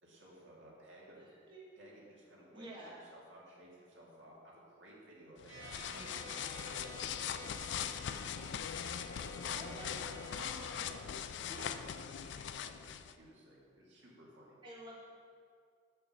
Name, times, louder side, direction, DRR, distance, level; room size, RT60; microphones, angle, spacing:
voice 1, 0.0-1.3 1.7-8.4 8.8-11.8 12.1-14.6, right 1 dB, 70° right, -4 dB, 2.2 m, -57 dB
voice 2, 1.1-1.7 2.5-3.0 5.7-6.3 9.5-11.0 11.5-11.8 14.6-15.0, right 1 dB, 25° right, -6 dB, 1.6 m, -51 dB
sound 1, 5.4-13.1, left 8 dB, 65° left, 0.4 m, -41 dB
sound 2, 5.5-11.0, right 1 dB, 85° right, 2.6 m, -52 dB
6.8 x 6.3 x 7.2 m, 2.2 s
head